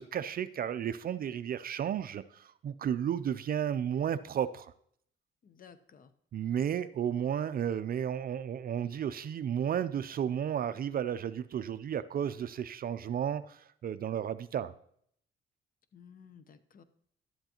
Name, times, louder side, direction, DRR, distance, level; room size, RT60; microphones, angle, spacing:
voice 1, 0.0-4.7 6.3-14.7, right 9 dB, 50° right, 13 dB, 0.4 m, -33 dB
voice 2, 5.4-6.1 15.9-16.8, left 7 dB, 45° left, 12 dB, 0.8 m, -55 dB
11.5 x 7.9 x 2.9 m, 0.66 s
cardioid pair, 90°, 20 cm